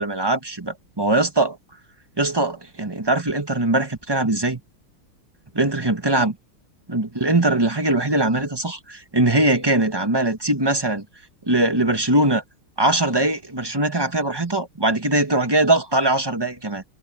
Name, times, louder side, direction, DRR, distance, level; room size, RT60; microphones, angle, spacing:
voice 1, 0.0-1.6 2.2-4.6 5.5-6.3 6.9-11.0 11.5-12.4 12.8-16.8, right 2 dB, 15° right, 1.3 m, -21 dB
omnidirectional pair, 2.3 m